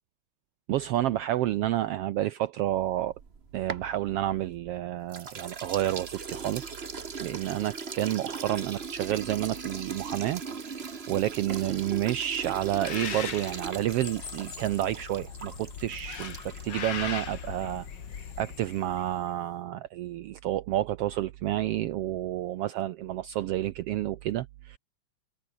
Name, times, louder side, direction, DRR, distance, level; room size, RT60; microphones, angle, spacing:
voice 1, 0.7-3.1 3.5-6.8 7.2-10.4 11.1-16.3 16.6-17.9 18.4-24.8, right 13 dB, 75° right, 1.4 m, -30 dB
sound 1, 3.1-4.7 5.1-16.9, right 5 dB, 35° right, 1.0 m, -39 dB
Bird, 12.7-19.1, left 7 dB, 45° left, 2.1 m, -39 dB
omnidirectional pair, 3.4 m